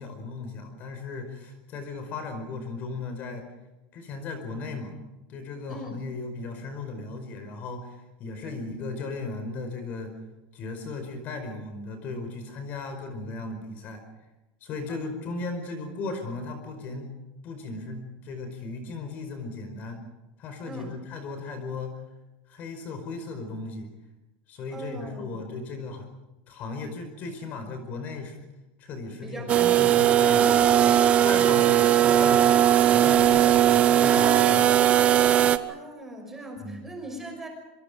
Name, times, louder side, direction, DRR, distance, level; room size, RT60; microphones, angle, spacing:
voice 1, 0.0-3.5 3.9-4.9 5.3-10.1 10.5-14.0 14.6-17.1 17.4-20.0 20.4-22.0 22.5-23.9 24.5-26.0 26.5-28.4 28.8-29.5 29.8-31.0 31.2-32.4 32.9-34.7 36.6-36.9, left 3 dB, 35° left, 7 dB, 4.9 m, -36 dB
voice 2, 5.7-6.0 8.4-8.7 14.9-15.0 20.6-21.0 24.7-25.4 29.2-29.9 35.7-37.5, right 1 dB, 5° right, 1 dB, 5.8 m, -40 dB
sound 1, 29.5-35.6, right 10 dB, 25° right, 0.9 m, -19 dB
27.0 x 25.0 x 5.2 m, 1.0 s
supercardioid pair, 170°, 5 cm